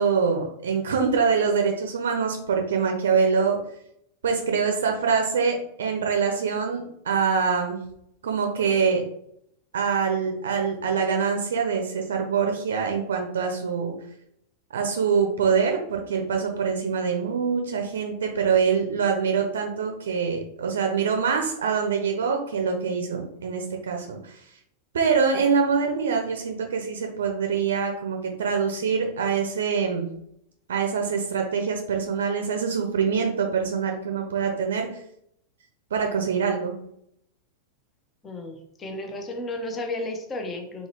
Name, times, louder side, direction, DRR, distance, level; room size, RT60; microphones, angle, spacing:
voice 1, 0.0-3.6 4.2-7.8 8.2-9.0 9.7-13.9 14.7-24.4 24.9-30.1 30.7-34.9 35.9-36.7, right 6 dB, 65° right, 3 dB, 0.6 m, -24 dB
voice 2, 38.2-40.9, left 2 dB, 20° left, 4 dB, 0.9 m, -33 dB
4.0 x 3.9 x 2.9 m, 0.72 s
figure-of-eight pair, 90°, 0 cm